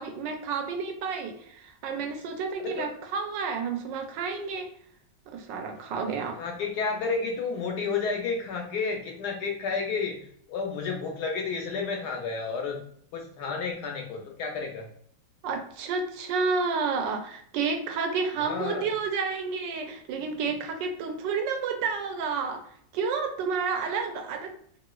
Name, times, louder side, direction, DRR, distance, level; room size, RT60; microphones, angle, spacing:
voice 1, 0.0-4.7 5.3-6.4 15.4-22.6 22.9-24.5, right 5 dB, 75° right, 4 dB, 1.2 m, -30 dB
voice 2, 6.3-12.8 13.1-14.9 18.4-18.9, left 4 dB, 70° left, 2 dB, 1.1 m, -31 dB
3.1 x 2.9 x 2.3 m, 0.64 s
omnidirectional pair, 2.1 m